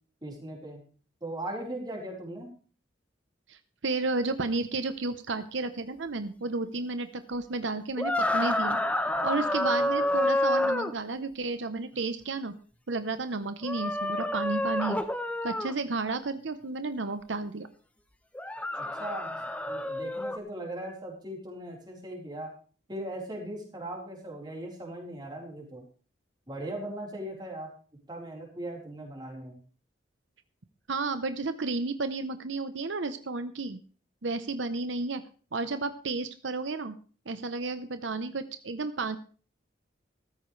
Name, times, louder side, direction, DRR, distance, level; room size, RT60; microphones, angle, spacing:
voice 1, 0.2-0.8 1.2-2.5 18.8-19.4 19.7-22.5 22.9-25.8 26.5-27.7 28.1-29.6, right 1 dB, 25° right, -1 dB, 4.2 m, -39 dB
voice 2, 3.5-8.8 9.2-12.5 12.9-15.0 15.4-17.7 30.9-33.8 34.2-35.2 35.5-37.0 37.3-39.2, right 3 dB, 80° right, 10 dB, 0.9 m, -32 dB
sound 1, 8.0-10.9 13.6-15.7 18.3-20.4, left 1 dB, 5° left, 0.9 m, -28 dB
14.0 x 13.5 x 3.3 m, 0.39 s
head